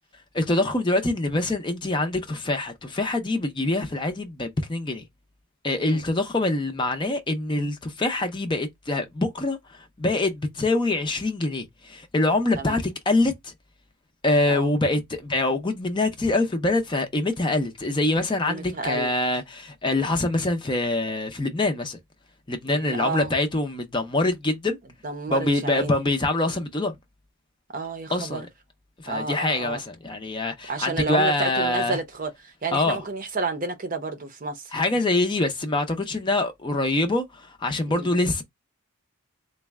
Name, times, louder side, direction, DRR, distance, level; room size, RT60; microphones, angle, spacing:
voice 1, 0.3-5.1 5.6-13.5 14.2-22.0 22.5-24.8 25.3-26.9 28.1-28.5 29.0-32.0 32.7-33.0 34.7-38.4, left 2 dB, 20° left, 0.5 m, -25 dB
voice 2, 18.4-19.1 22.7-23.3 25.0-26.0 27.7-28.5 29.1-29.8 30.7-34.8 37.9-38.1, right 3 dB, 40° right, 0.7 m, -31 dB
3.9 x 2.1 x 3.4 m
head